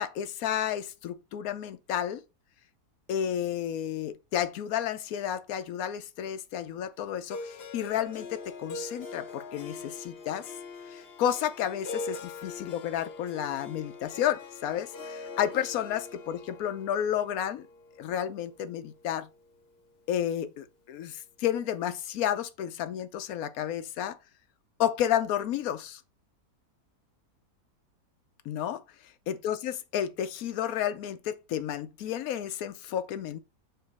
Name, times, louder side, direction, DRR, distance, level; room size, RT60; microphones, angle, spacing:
voice 1, 0.0-2.2 3.1-10.5 10.9-17.7 18.0-19.3 20.1-24.2 24.8-26.0 28.4-28.8 29.3-33.4, left 10 dB, 65° left, 1.1 m, -31 dB
Harp, 7.3-19.4, left 3 dB, 45° left, 1.1 m, -43 dB
7.9 x 2.9 x 4.1 m
omnidirectional pair, 1.8 m